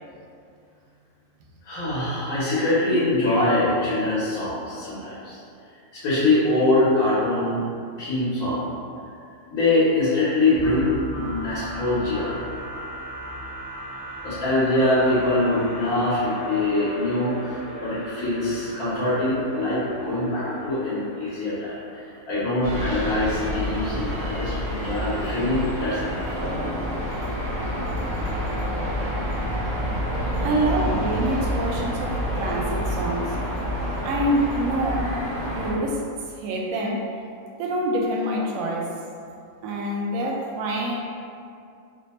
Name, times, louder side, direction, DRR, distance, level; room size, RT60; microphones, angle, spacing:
voice 1, 1.6-5.4 5.9-7.6 8.0-8.7 9.5-12.3 14.2-17.3 17.8-21.8 22.3-26.5, left 2 dB, 85° left, -10 dB, 1.3 m, -23 dB
sound 1, 10.5-22.3, right 1 dB, 40° left, 0.5 m, -37 dB
sound 2, 22.6-35.7, equal, 45° right, 0.6 m, -28 dB
voice 2, 30.4-33.4 34.0-35.2 35.6-36.1 36.3-37.1 37.6-38.9 39.6-41.0, right 1 dB, 75° right, -1 dB, 1.0 m, -26 dB
3.3 x 2.1 x 4.1 m, 2.4 s
omnidirectional pair, 1.5 m